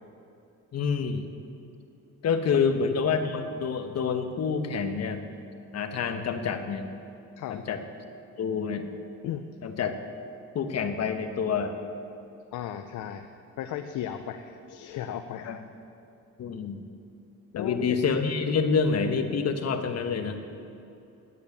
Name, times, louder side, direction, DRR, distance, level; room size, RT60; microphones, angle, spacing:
voice 1, 0.7-1.2 2.2-5.3 5.7-6.9 7.5-7.8 8.4-9.0 9.6-10.0 10.5-11.8 15.4-15.6 16.4-16.8 17.5-20.4, left 5 dB, 55° left, 7 dB, 1.2 m, -27 dB
voice 2, 12.5-13.3 13.6-15.5 17.5-18.0, left 10 dB, 80° left, 7 dB, 0.7 m, -35 dB
11.0 x 8.7 x 8.5 m, 2.6 s
cardioid pair, 90°, 30 cm